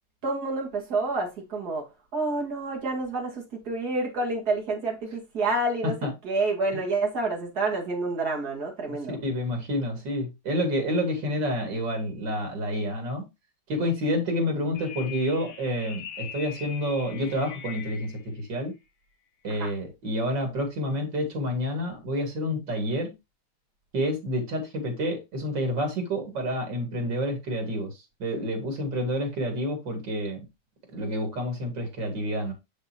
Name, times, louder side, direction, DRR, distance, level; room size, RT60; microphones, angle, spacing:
voice 1, 0.2-5.9 6.2-9.2 19.5-19.7, right 2 dB, 60° right, 2.5 m, -28 dB
voice 2, 8.9-13.2 13.7-18.7 19.4-23.1 23.9-30.4 30.9-32.5, equal, 85° right, 3.0 m, -29 dB
sound 1, 14.7-18.2, left 8 dB, 60° left, 1.7 m, -42 dB
7.0 x 6.7 x 2.9 m
omnidirectional pair, 1.9 m